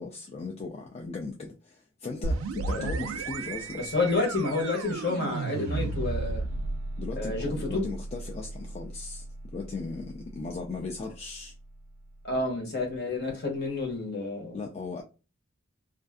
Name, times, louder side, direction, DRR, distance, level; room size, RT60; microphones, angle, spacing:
voice 1, 0.0-3.8 7.0-9.3 9.5-11.5 14.5-15.0, left 3 dB, 30° left, 0.3 m, -37 dB
sound 1, 2.2-11.8, right 3 dB, 85° right, 0.3 m, -35 dB
voice 2, 3.7-6.4 7.2-7.9 12.2-14.6, left 3 dB, 55° left, 1.0 m, -29 dB
2.5 x 2.4 x 2.3 m
head